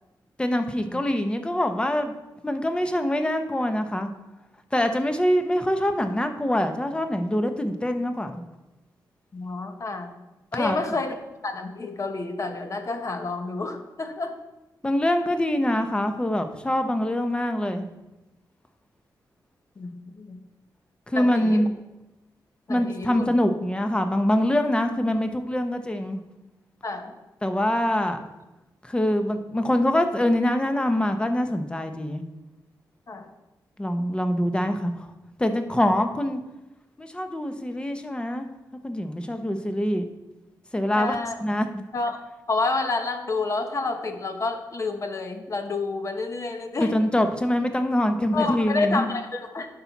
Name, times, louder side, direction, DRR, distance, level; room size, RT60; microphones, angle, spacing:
voice 1, 0.4-2.1 2.4-4.1 4.7-8.4 10.5-10.8 14.8-17.9 21.1-21.7 22.7-26.2 27.4-28.2 28.8-32.2 33.8-35.1 35.4-36.4 37.0-38.5 38.8-40.1 40.7-41.8 46.8-49.1, left 1 dB, 15° left, 7 dB, 0.8 m, -24 dB
voice 2, 9.3-10.1 10.5-11.1 11.4-14.3 19.8-20.4 21.1-21.6 22.7-23.3 26.8-27.1 33.1-33.3 41.0-41.3 41.9-42.2 42.5-46.9 48.3-49.7, left 3 dB, 45° left, 6 dB, 1.0 m, -29 dB
10.0 x 5.9 x 4.1 m, 1.0 s
wide cardioid pair, 100°, 8 cm